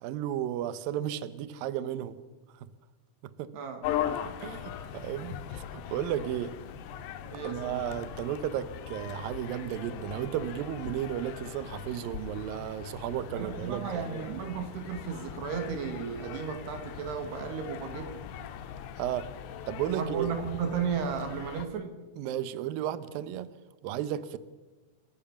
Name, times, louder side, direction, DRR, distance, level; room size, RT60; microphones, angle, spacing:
voice 1, 0.0-2.2 2.5-2.7 3.2-3.5 4.4-6.6 7.4-14.2 19.0-19.3 19.7-20.3 22.2-23.5 23.8-24.4, right 11 dB, 90° right, 13 dB, 2.0 m, -34 dB
sound 1, 3.8-21.7, left 10 dB, 75° left, 3.1 m, -40 dB
voice 2, 7.3-7.9 13.3-18.3 19.9-22.0, right 6 dB, 65° right, 5 dB, 3.6 m, -34 dB
29.5 x 14.0 x 7.0 m, 1.3 s
omnidirectional pair, 5.5 m